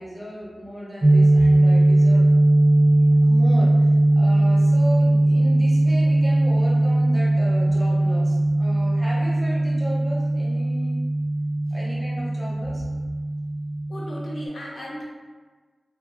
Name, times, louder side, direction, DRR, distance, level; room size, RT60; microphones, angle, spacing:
voice 1, 0.0-2.2 3.2-3.9 4.2-11.0 11.7-12.8, equal, 15° left, -6 dB, 0.7 m, -35 dB
sound 1, 1.0-14.5, right 1 dB, 30° right, 0.3 m, -19 dB
voice 2, 13.9-15.0, equal, 75° left, -4 dB, 0.6 m, -35 dB
3.1 x 2.2 x 2.4 m, 1.4 s
wide cardioid pair, 105°, 0 cm